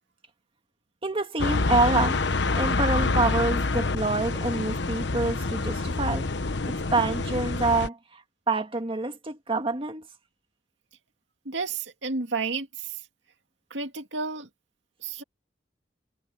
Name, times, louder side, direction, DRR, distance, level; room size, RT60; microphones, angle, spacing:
voice 1, 1.0-2.2 2.5-6.3 6.7-10.1, right 3 dB, 30° right, 2.0 m, -27 dB
sound 1, 1.4-7.9, left 3 dB, 70° left, 1.1 m, -27 dB
voice 2, 11.5-13.0 13.7-14.5 15.0-15.2, right 4 dB, 80° right, 2.2 m, -31 dB
head